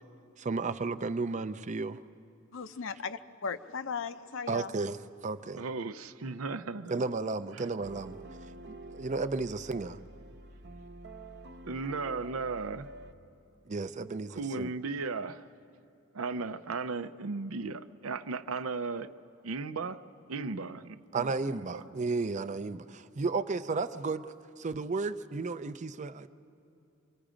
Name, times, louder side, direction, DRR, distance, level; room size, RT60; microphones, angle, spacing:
voice 1, 0.4-2.0 4.5-5.6 6.9-8.2 8.7-10.0 13.7-14.7 21.1-26.3, right 3 dB, 35° right, 0.5 m, -33 dB
voice 2, 2.5-4.7, left 5 dB, 65° left, 0.7 m, -37 dB
voice 3, 5.6-6.9 7.5-7.6 11.7-12.9 14.3-15.4 16.1-19.1 19.4-20.0 20.3-21.8, right 4 dB, 85° right, 0.6 m, -36 dB
sound 1, 7.8-13.1, right 2 dB, 55° right, 0.9 m, -48 dB
26.5 x 23.0 x 5.1 m
head